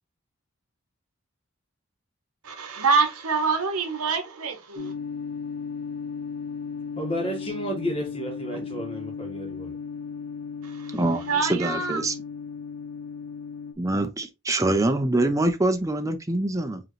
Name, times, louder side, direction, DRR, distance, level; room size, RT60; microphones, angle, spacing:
voice 1, 2.4-4.9 10.6-12.0, right 4 dB, 90° right, 1.0 m, -26 dB
sound 1, 4.8-13.7, left 5 dB, 60° left, 0.5 m, -35 dB
voice 2, 7.0-9.7, equal, 25° left, 1.6 m, -32 dB
voice 3, 10.9-12.1 13.8-16.8, right 2 dB, 15° right, 0.5 m, -25 dB
4.9 x 3.0 x 3.1 m
head